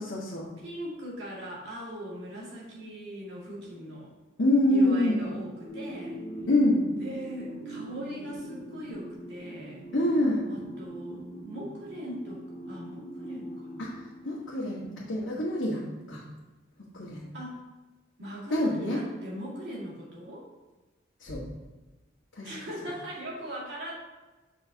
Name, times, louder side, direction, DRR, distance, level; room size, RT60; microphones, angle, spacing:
voice 1, 0.0-0.5 4.4-5.4 6.5-6.8 9.9-10.4 13.8-14.0 14.2-15.8 16.1-16.2 16.9-17.3 18.5-19.0 21.2-21.4 22.3-22.5, left 1 dB, 80° left, -7 dB, 1.4 m, -26 dB
voice 2, 0.6-4.1 4.7-6.2 7.0-9.8 10.5-13.9 14.8-15.1 17.3-17.6 18.2-20.5 22.4-23.9, equal, 60° right, -5 dB, 2.1 m, -40 dB
sound 1, 5.7-14.7, right 1 dB, 25° right, 1.6 m, -42 dB
7.0 x 5.3 x 2.8 m, 1.2 s
head